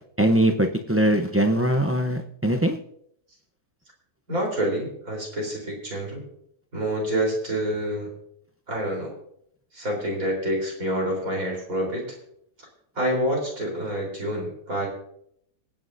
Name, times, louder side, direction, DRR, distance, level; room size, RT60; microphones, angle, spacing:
voice 1, 0.2-2.8, right 1 dB, 20° right, 4 dB, 0.3 m, -21 dB
voice 2, 4.3-6.2 6.7-8.1 8.7-9.1 9.7-12.0 13.0-14.9, right 1 dB, 65° right, -1 dB, 4.4 m, -27 dB
26.0 x 9.4 x 2.7 m, 0.71 s
omnidirectional pair, 1.6 m